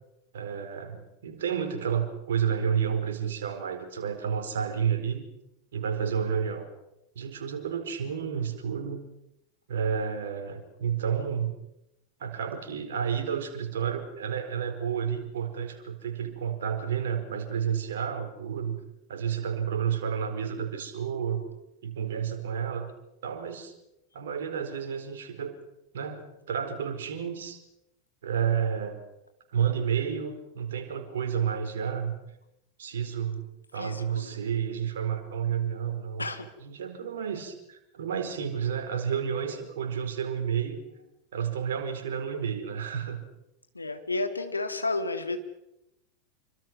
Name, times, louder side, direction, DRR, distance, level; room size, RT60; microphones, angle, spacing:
voice 1, 0.3-5.3 5.7-6.7 7.1-9.0 9.7-11.5 12.2-18.8 19.1-21.4 21.8-22.9 23.2-23.7 24.1-25.5 25.9-27.6 28.2-29.0 29.5-32.1 32.8-33.4 33.7-36.2 36.6-40.8 41.3-43.2, right 7 dB, 65° right, 6 dB, 4.4 m, -30 dB
voice 2, 33.7-34.4 36.2-36.5 43.7-45.4, left 3 dB, 80° left, 8 dB, 2.3 m, -32 dB
27.5 x 24.5 x 6.2 m, 0.89 s
figure-of-eight pair, 85°, 0 cm